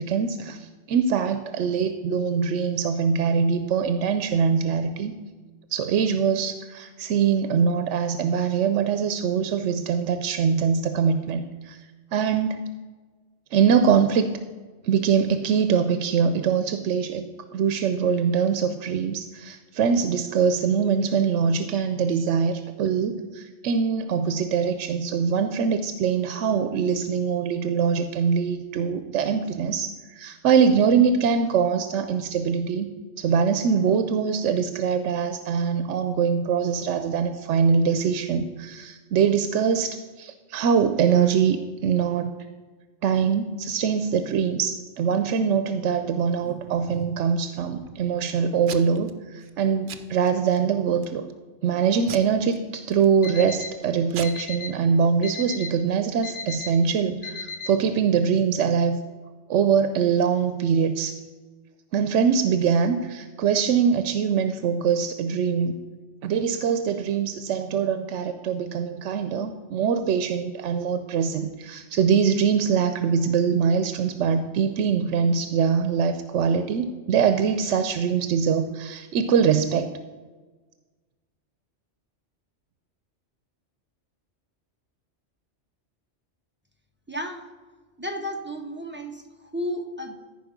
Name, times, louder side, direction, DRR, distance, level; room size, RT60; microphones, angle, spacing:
voice 1, 0.0-5.1 5.7-11.8 12.1-12.6 13.5-14.4 14.8-17.2 17.5-42.3 43.0-51.3 51.6-59.0 59.5-61.1 61.9-65.8 66.2-79.9, right 6 dB, 90° right, 9 dB, 0.9 m, -23 dB
Packing tape duct tape / Tearing, 45.9-47.3 47.7-48.2 48.6-49.1 49.4-49.6 49.9-50.6 51.0-51.4 52.1-53.4 53.8-53.9 54.1-54.3, right 8 dB, 65° right, 0.9 m, -40 dB
Alarm, 53.2-53.7 54.2-54.7 55.2-55.7 56.2-56.7 57.2-57.7, left 5 dB, 80° left, 1.7 m, -34 dB
voice 2, 87.1-87.4 88.0-90.2, equal, 10° right, 3 dB, 0.9 m, -33 dB
14.0 x 5.3 x 5.1 m, 1.3 s
omnidirectional pair, 1.2 m